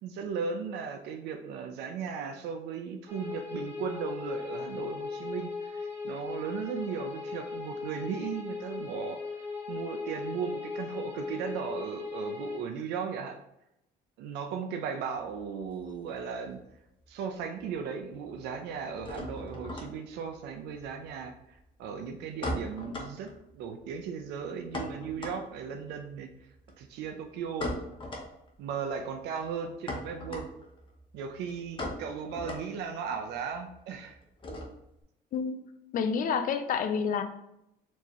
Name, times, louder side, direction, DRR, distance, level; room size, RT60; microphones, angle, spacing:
voice 1, 0.0-9.2 9.7-13.4 14.2-16.6 17.1-23.3 23.5-26.3 26.8-27.7 28.6-30.5 31.1-34.2, right 6 dB, 85° right, 5 dB, 0.5 m, -36 dB
sound 1, 3.1-12.6, left 4 dB, 15° right, 1.1 m, -38 dB
sound 2, 15.2-16.8 17.0-17.7 18.0-35.0, left 1 dB, 30° left, 0.9 m, -41 dB
voice 2, 35.3-35.6 35.9-37.2, left 6 dB, 55° left, 8 dB, 0.5 m, -29 dB
4.5 x 2.8 x 3.0 m, 0.82 s
cardioid pair, 110°, 17 cm